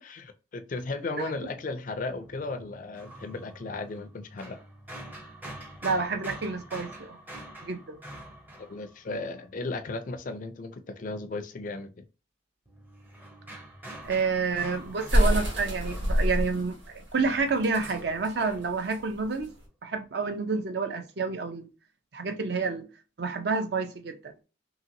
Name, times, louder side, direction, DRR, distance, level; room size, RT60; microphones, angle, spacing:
voice 1, 0.0-4.6 8.6-12.0, left 3 dB, 40° left, 0.3 m, -35 dB
sound 1, 2.2-9.4 12.7-16.8 17.2-18.9, right 1 dB, 10° right, 0.5 m, -46 dB
voice 2, 5.8-7.2 7.6-8.0 14.0-16.8 17.1-19.5 19.8-21.7 22.1-22.9 23.2-24.3, right 4 dB, 55° right, 0.5 m, -29 dB
sound 2, 14.0-19.6, equal, 75° right, 1.3 m, -27 dB
2.9 x 2.8 x 2.6 m
head